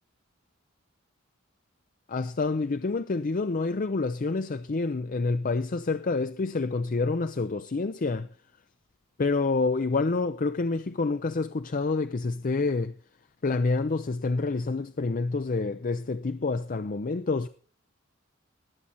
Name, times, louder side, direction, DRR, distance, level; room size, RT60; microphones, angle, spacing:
voice 1, 2.1-8.3 9.2-12.9 13.4-17.5, left 3 dB, 40° left, 0.5 m, -28 dB
20.0 x 7.6 x 4.1 m
head